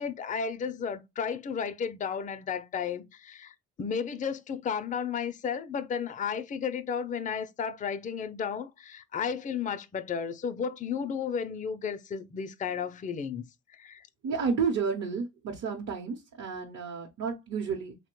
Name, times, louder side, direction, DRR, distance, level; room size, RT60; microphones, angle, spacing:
voice 1, 0.0-13.4 13.7-14.1, left 6 dB, 25° left, 0.4 m, -33 dB
voice 2, 14.2-18.0, right 5 dB, 55° right, 0.8 m, -31 dB
3.3 x 2.1 x 2.9 m
cardioid pair, 90°, 30 cm